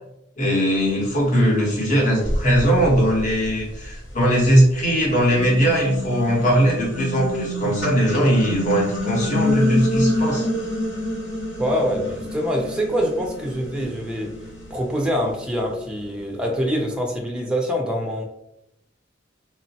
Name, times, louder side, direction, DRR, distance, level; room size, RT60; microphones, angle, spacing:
voice 1, 0.4-10.5, equal, 40° left, -3 dB, 0.8 m, -19 dB
sound 1, 1.5-1.6 2.2-4.5 5.0-16.3, left 1 dB, 80° left, 0.9 m, -28 dB
voice 2, 11.6-14.3 14.7-18.2, equal, 5° right, 0 dB, 0.4 m, -25 dB
2.9 x 2.0 x 2.7 m, 0.83 s
head